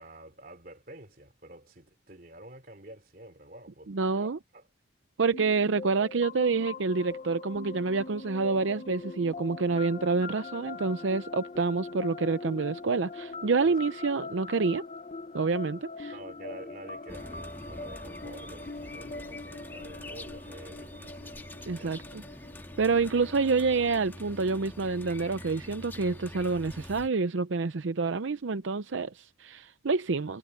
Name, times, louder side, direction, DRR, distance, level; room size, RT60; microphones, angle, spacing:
voice 1, 0.0-4.6 13.7-13.8 16.1-21.4 21.8-22.0, right 1 dB, 45° right, 3.4 m, -49 dB
voice 2, 3.9-4.4 5.2-14.8 15.3-16.1 21.7-22.2 22.8-30.4, right 4 dB, 80° right, 0.6 m, -28 dB
sound 1, 5.3-24.9, left 3 dB, 35° left, 0.8 m, -42 dB
sound 2, 17.1-27.1, left 1 dB, 10° left, 1.7 m, -45 dB
head